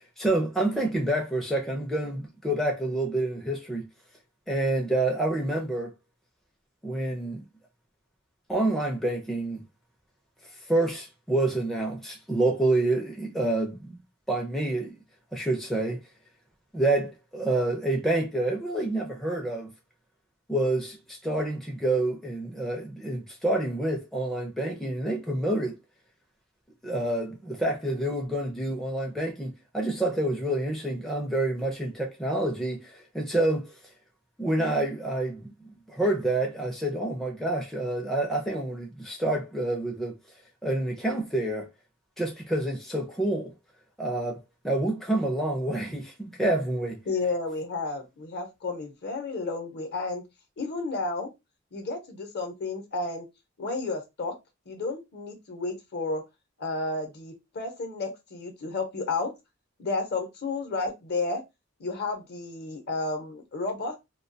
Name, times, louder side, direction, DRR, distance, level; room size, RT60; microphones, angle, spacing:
voice 1, 0.0-3.9 4.5-5.9 6.8-7.4 8.5-9.6 10.7-14.0 14.3-15.0 15.3-16.0 16.7-19.7 20.5-25.8 26.8-33.7 34.4-40.1 40.6-41.7 42.2-43.5 44.0-47.0, right 2 dB, ahead, 0.4 m, -28 dB
voice 2, 47.1-50.2 50.6-51.3 51.7-53.3 53.6-54.4 54.7-56.2 56.6-59.3 59.8-61.4 61.8-63.9, left 3 dB, 50° left, 0.7 m, -32 dB
2.2 x 2.2 x 2.6 m
head